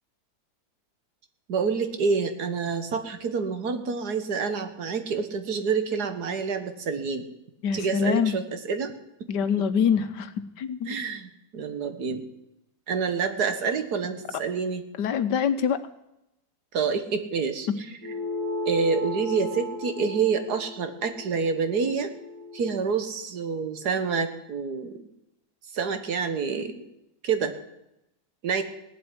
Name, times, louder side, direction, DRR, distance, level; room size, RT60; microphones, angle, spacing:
voice 1, 1.5-7.3 7.7-8.9 9.2-9.3 10.9-12.2 12.9-14.8 16.7-18.1 18.7-22.1 22.5-25.0 25.7-26.8 27.2-27.5 28.4-28.6, right 5 dB, 70° right, 8 dB, 1.9 m, -28 dB
voice 2, 7.6-8.3 9.3-10.3 10.6-11.0 15.0-15.8, left 7 dB, 85° left, 11 dB, 1.6 m, -24 dB
sound 1, 18.0-22.8, left 2 dB, 30° right, 3.3 m, -35 dB
17.5 x 7.8 x 9.8 m, 0.88 s
omnidirectional pair, 1.8 m